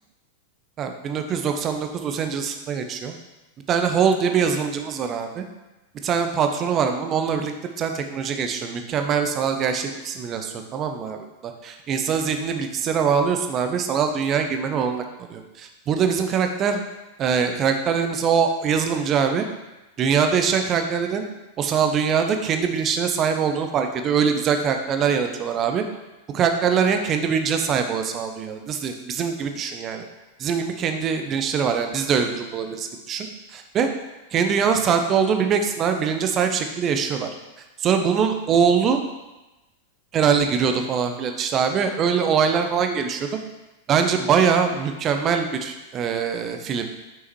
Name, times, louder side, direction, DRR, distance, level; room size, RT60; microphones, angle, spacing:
voice 1, 0.8-3.1 3.7-5.4 6.0-16.8 17.2-19.5 20.0-21.2 21.6-25.8 26.3-30.0 30.4-33.9 34.3-37.3 37.8-39.0 40.1-43.3 43.9-46.8, right 6 dB, 30° right, 6 dB, 0.7 m, -23 dB
5.9 x 5.7 x 3.1 m, 1.0 s
figure-of-eight pair, 90°, 0 cm